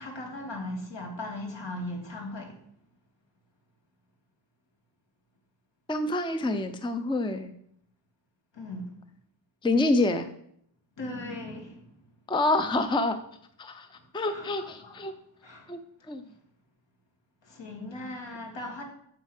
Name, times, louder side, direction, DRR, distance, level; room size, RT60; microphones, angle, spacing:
voice 1, 0.0-2.6 8.5-8.9 11.0-11.8 14.3-15.2 15.4-15.7 17.4-18.8, left 1 dB, 70° left, 2.8 m, -38 dB
voice 2, 5.9-7.5 9.6-10.3 12.3-13.2 13.6-15.1 15.7-15.8 16.1-16.2, left 2 dB, 10° left, 0.6 m, -27 dB
7.8 x 7.4 x 6.5 m
wide cardioid pair, 135°, 46 cm